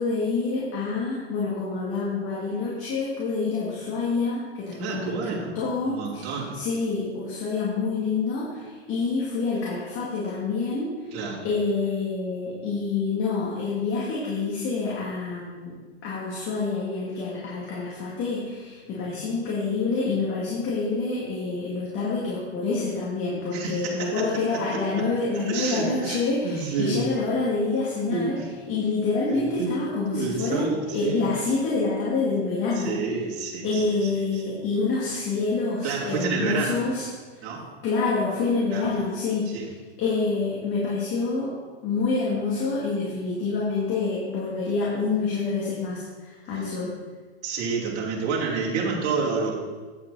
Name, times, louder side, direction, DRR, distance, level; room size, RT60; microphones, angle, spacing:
voice 1, 0.0-11.1 11.4-15.8 16.0-28.4 28.7-32.9 33.6-37.1 37.8-39.5 40.0-41.5 41.8-46.9, left 4 dB, 40° left, -6 dB, 2.4 m, -27 dB
voice 2, 4.8-5.6 5.8-6.6 11.1-11.5 23.5-25.1 25.4-27.0 28.1-28.5 29.3-29.8 30.1-31.2 32.8-34.6 35.8-36.8 37.4-37.6 38.7-38.9 39.5-39.7 46.5-46.6 47.4-49.5, right 4 dB, 45° right, -4 dB, 2.7 m, -29 dB
9.4 x 7.3 x 4.1 m, 1.4 s
hypercardioid pair, 125°, 33 cm